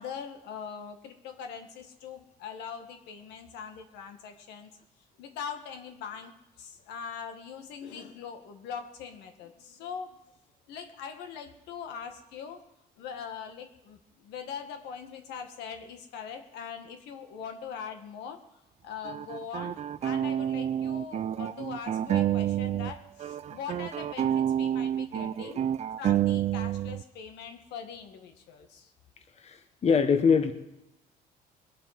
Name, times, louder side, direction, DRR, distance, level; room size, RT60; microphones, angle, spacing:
voice 1, 0.0-4.7 5.2-10.2 10.7-12.6 13.0-18.4 18.8-25.7 26.0-28.9, left 7 dB, 85° left, 5 dB, 1.7 m, -42 dB
sound 1, 19.0-22.9 23.2-27.0, right 10 dB, 40° right, 0.4 m, -29 dB
voice 2, 29.4-30.5, left 6 dB, 40° left, 7 dB, 1.4 m, -24 dB
20.5 x 8.3 x 5.9 m, 0.88 s
cardioid pair, 110°, 17 cm